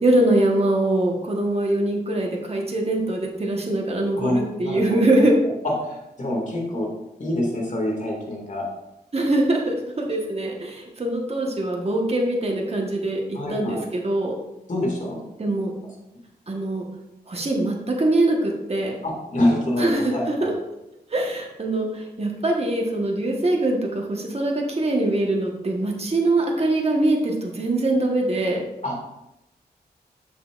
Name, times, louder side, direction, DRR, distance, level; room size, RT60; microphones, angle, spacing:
voice 1, 0.0-5.3 9.1-14.3 15.4-15.7 16.5-16.9 17.3-19.0 19.8-20.5 21.1-28.6, right 2 dB, 35° right, 0 dB, 1.3 m, -23 dB
voice 2, 4.2-5.3 5.6-6.9 7.2-8.6 13.3-13.8 14.7-15.2 19.0-20.5 28.8-28.9, left 1 dB, 50° left, -1 dB, 2.2 m, -26 dB
7.1 x 6.4 x 2.5 m, 0.91 s
cardioid pair, 55°, 17 cm